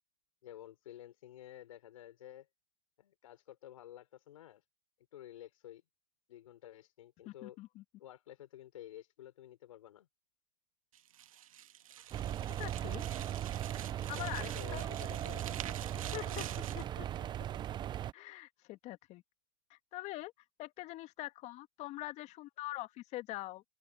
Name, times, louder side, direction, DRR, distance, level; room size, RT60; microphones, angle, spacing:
voice 1, 0.4-2.5 3.0-4.6 5.1-5.8 6.3-7.6 8.0-10.1 14.2-16.4, left 12 dB, 75° left, 5.1 m, -52 dB
voice 2, 7.3-7.8 12.6-13.0 14.1-14.9 16.1-16.5 16.7-17.1 18.1-19.2 19.7-20.3 20.6-23.6, left 17 dB, 40° left, 2.1 m, -44 dB
sound 1, 10.9-16.9, right 11 dB, 80° right, 1.7 m, -47 dB
sound 2, 12.1-18.1, right 11 dB, 25° right, 0.8 m, -38 dB
open air
hypercardioid pair, 115°, 18 cm